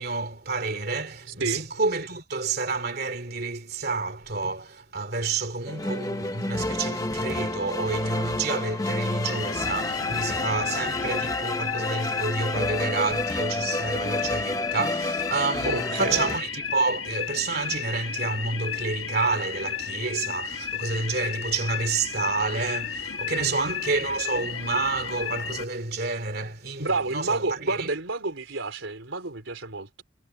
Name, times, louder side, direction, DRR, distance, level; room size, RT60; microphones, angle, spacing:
voice 1, 0.0-27.9, right 3 dB, 55° right, 2.9 m, -29 dB
sound 1, 5.7-16.4, left 2 dB, 20° left, 1.0 m, -30 dB
sound 2, 9.3-25.7, left 7 dB, 85° left, 1.5 m, -33 dB
voice 2, 15.6-16.4 23.4-23.8 26.8-30.0, right 3 dB, 85° right, 3.8 m, -30 dB
head